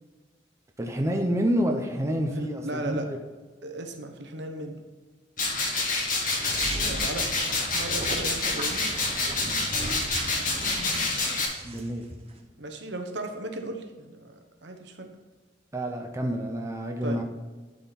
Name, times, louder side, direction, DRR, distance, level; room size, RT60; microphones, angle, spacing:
voice 1, 0.8-3.2 11.6-12.1 15.7-17.2, equal, 15° right, 2 dB, 0.7 m, -28 dB
voice 2, 2.4-3.1 3.6-4.8 6.9-7.3 7.7-8.9 10.2-10.5 12.6-15.1 17.0-17.2, right 1 dB, 70° right, 5 dB, 1.0 m, -36 dB
sound 1, 5.4-11.5, left 3 dB, 50° left, 1.6 m, -28 dB
sound 2, 6.3-11.9 12.1-12.4, right 2 dB, 35° right, 1.2 m, -36 dB
11.5 x 4.5 x 4.1 m, 1.3 s
head